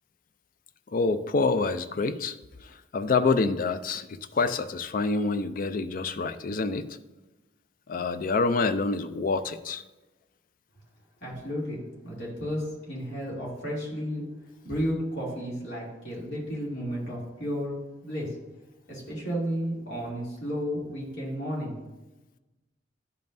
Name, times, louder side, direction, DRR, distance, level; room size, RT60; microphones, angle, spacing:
voice 1, 0.9-6.9 7.9-9.8, left 4 dB, 45° left, 10 dB, 0.4 m, -27 dB
voice 2, 11.2-14.2 14.6-18.4 18.9-21.8, equal, 65° left, -5 dB, 2.7 m, -33 dB
11.5 x 5.3 x 2.6 m, 1.0 s
head